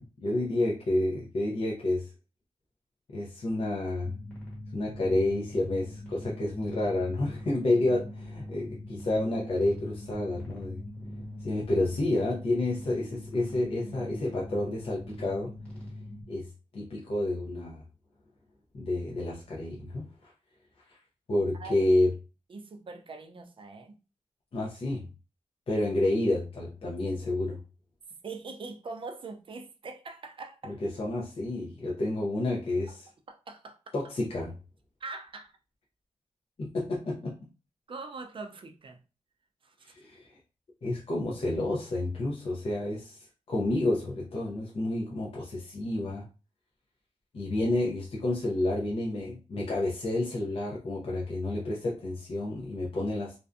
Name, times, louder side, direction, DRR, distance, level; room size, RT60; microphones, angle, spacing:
voice 1, 0.0-2.1 3.1-4.1 4.7-10.8 11.4-15.5 16.3-17.8 18.7-20.3 20.9-21.0 21.3-22.1 24.5-25.1 25.7-27.6 30.6-33.1 33.9-34.5 36.6-37.4 39.8-40.3 40.8-46.3 47.3-53.3, left 2 dB, 45° left, 0.5 m, -30 dB
sound 1, 4.0-16.2, left 1 dB, 10° left, 1.1 m, -42 dB
voice 2, 21.6-21.9 22.5-24.0 28.2-30.8 32.9-33.0 33.3-33.8 35.0-35.5 37.9-39.0 39.6-39.9, right 3 dB, 40° right, 0.4 m, -42 dB
2.6 x 2.1 x 2.4 m
wide cardioid pair, 160°, 13 cm